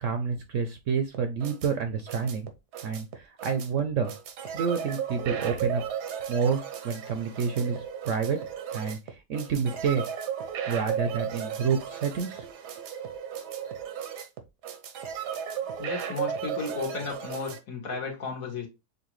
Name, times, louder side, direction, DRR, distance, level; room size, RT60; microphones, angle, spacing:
voice 1, 0.0-2.5 2.8-4.1 4.5-5.8 6.3-8.4 8.7-10.0 10.7-12.5, right 6 dB, 60° right, 7 dB, 0.9 m, -29 dB
sound 1, 1.1-17.6, right 8 dB, 85° right, 1.4 m, -35 dB
voice 2, 15.8-18.7, left 4 dB, 60° left, 1 dB, 1.7 m, -34 dB
6.7 x 2.5 x 3.0 m, 0.25 s
omnidirectional pair, 1.7 m